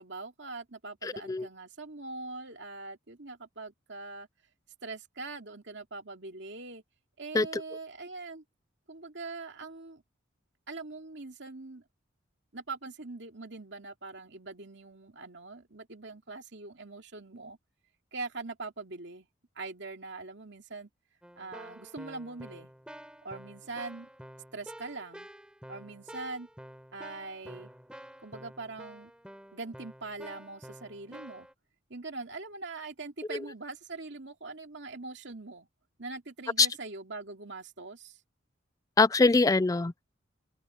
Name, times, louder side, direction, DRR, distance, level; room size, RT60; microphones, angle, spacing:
voice 1, 0.0-4.3 4.8-6.8 7.2-8.4 8.9-10.0 10.7-11.8 12.5-17.6 18.1-19.3 19.6-20.9 21.4-22.7 23.2-24.1 24.5-25.3 25.7-26.5 26.9-27.7 28.2-29.1 29.5-31.5 31.9-35.7 36.0-38.2, right 3 dB, 65° right, 2.6 m, -42 dB
voice 2, 1.0-1.5 7.3-7.6 33.3-33.4 36.6-36.7 39.0-40.0, left 3 dB, 15° left, 0.3 m, -24 dB
Keyboard (musical), 21.2-31.5, equal, 5° right, 3.3 m, -49 dB
head